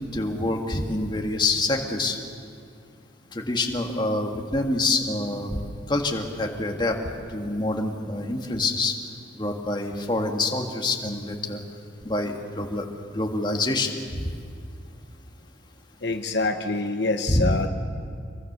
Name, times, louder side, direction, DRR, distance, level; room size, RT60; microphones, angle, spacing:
voice 1, 0.1-2.2 3.3-5.6 5.9-7.0 7.3-8.9 9.4-11.6 12.0-12.8 13.1-14.3 17.3-17.5, left 2 dB, 25° left, 2 dB, 1.9 m, -26 dB
voice 2, 16.0-17.7, left 3 dB, 65° left, 6 dB, 1.1 m, -25 dB
26.0 x 22.0 x 6.9 m, 2.4 s
head